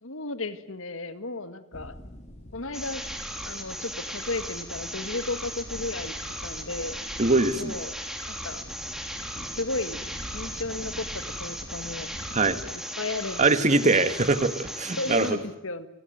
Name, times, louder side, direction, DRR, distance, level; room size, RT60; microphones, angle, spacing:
voice 1, 0.0-1.9 2.5-3.0 3.4-6.2 6.4-7.0 7.5-8.0 8.3-8.7 9.6-10.0 10.3-12.1 12.6-14.2 15.0-15.9, left 2 dB, 90° left, 11 dB, 1.9 m, -34 dB
sound 1, 1.7-12.7, equal, 35° left, 2.8 m, -44 dB
sound 2, 2.7-15.3, equal, 5° right, 3.6 m, -37 dB
voice 2, 7.2-7.8 12.3-12.6 13.4-15.4, right 3 dB, 40° right, 11 dB, 1.6 m, -22 dB
27.5 x 20.5 x 9.4 m, 0.85 s
head